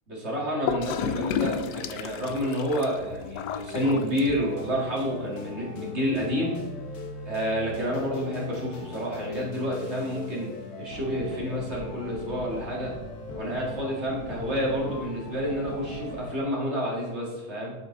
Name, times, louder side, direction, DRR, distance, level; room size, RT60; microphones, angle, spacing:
voice 1, 0.1-6.6 7.3-10.5 10.8-12.9 13.3-17.7, equal, 35° right, -3 dB, 2.3 m, -29 dB
Gurgling / Toilet flush, 0.7-4.6, left 8 dB, 75° left, 1.0 m, -32 dB
sound 1, 3.7-16.3, left 1 dB, 50° left, 1.6 m, -40 dB
9.2 x 6.9 x 3.9 m, 1.2 s
omnidirectional pair, 2.3 m